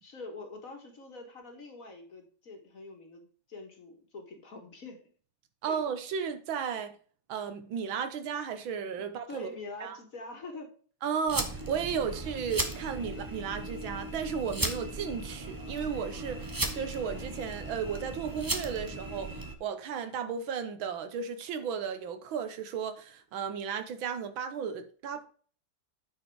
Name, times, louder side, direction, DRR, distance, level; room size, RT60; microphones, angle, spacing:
voice 1, 0.0-5.0 5.6-5.8 9.3-10.7 12.0-12.2, left 3 dB, 45° left, 1.9 m, -45 dB
voice 2, 5.6-7.0 7.3-9.5 9.8-10.0 11.0-25.3, right 7 dB, 80° right, 1.8 m, -34 dB
sound 1, 11.3-19.6, right 2 dB, 30° right, 0.4 m, -36 dB
9.5 x 4.7 x 4.6 m
omnidirectional pair, 2.1 m